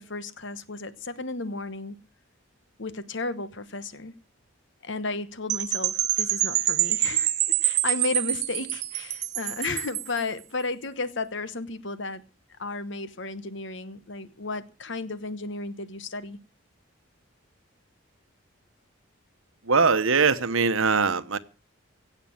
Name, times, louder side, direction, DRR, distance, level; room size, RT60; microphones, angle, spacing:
voice 1, 0.0-2.0 2.8-4.1 4.8-7.3 7.6-12.2 12.6-16.4, left 3 dB, 55° left, 1.1 m, -33 dB
Percussion / Wind chime, 5.5-10.2, right 14 dB, 50° right, 1.2 m, -26 dB
voice 2, 19.7-21.4, right 5 dB, 75° right, 1.1 m, -21 dB
17.0 x 7.0 x 8.8 m
head